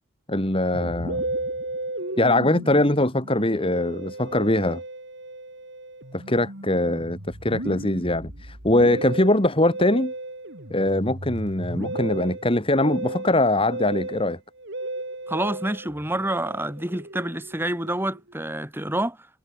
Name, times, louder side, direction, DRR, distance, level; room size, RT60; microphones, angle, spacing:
voice 1, 0.3-1.2 2.2-4.8 6.1-10.1 10.7-14.4, left 1 dB, 25° left, 2.4 m, -22 dB
Musical instrument, 0.7-18.3, right 1 dB, 55° right, 5.1 m, -35 dB
voice 2, 15.3-19.2, right 1 dB, 10° right, 2.5 m, -28 dB
head